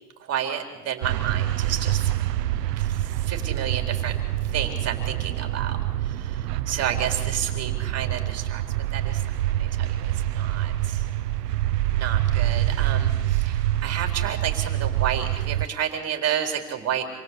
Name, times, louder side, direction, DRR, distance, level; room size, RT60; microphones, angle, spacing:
voice 1, 0.2-2.1 2.8-4.2 4.5-8.6 8.9-9.2 9.6-11.0 11.9-17.1, right 9 dB, 30° right, 4 dB, 4.2 m, -31 dB
sound 1, 1.0-15.7, right 13 dB, 80° right, 1.2 m, -26 dB
27.0 x 18.0 x 8.3 m, 1.1 s
hypercardioid pair, 115°, 47 cm